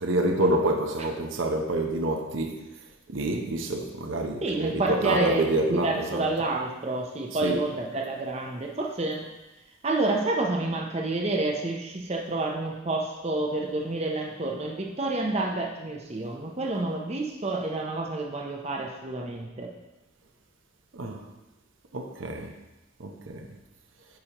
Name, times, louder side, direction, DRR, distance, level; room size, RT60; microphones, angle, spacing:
voice 1, 0.0-2.7 3.1-6.3 7.4-7.6 20.9-21.3 21.9-22.6 23.0-23.5, right 1 dB, 70° right, 0.7 m, -27 dB
voice 2, 4.4-9.3 9.8-19.7, right 2 dB, 30° right, 0.6 m, -29 dB
8.7 x 5.1 x 2.9 m
head